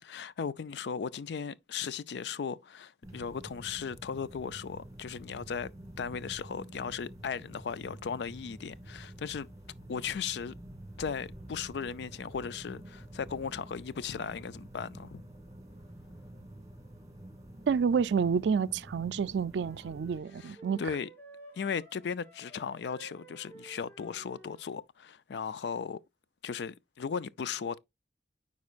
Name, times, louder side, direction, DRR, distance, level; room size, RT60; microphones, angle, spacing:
voice 1, 0.0-5.7 6.0-9.5 9.9-10.5 11.0-15.2 20.4-21.1 21.5-26.0 26.4-27.8, left 6 dB, 65° left, 0.4 m, -37 dB
sound 1, 3.0-20.2, right 1 dB, 20° right, 1.8 m, -49 dB
voice 2, 17.7-20.8, right 6 dB, 75° right, 0.4 m, -29 dB
sound 2, 19.6-24.8, right 1 dB, 10° left, 2.0 m, -53 dB
9.4 x 4.2 x 2.4 m
head